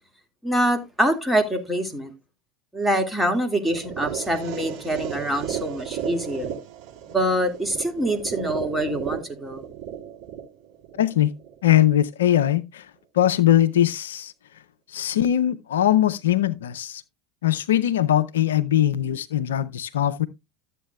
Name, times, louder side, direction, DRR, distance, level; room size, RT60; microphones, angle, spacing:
voice 1, 0.4-2.1 2.7-6.5 7.1-9.6, right 1 dB, 5° right, 2.1 m, -25 dB
sound 1, 3.7-11.7, right 9 dB, 55° right, 2.6 m, -34 dB
voice 2, 11.0-11.3 11.6-12.9 13.1-14.3 14.9-17.0 17.4-20.3, left 12 dB, 75° left, 0.4 m, -21 dB
13.0 x 8.1 x 2.3 m
figure-of-eight pair, 75°, 0 cm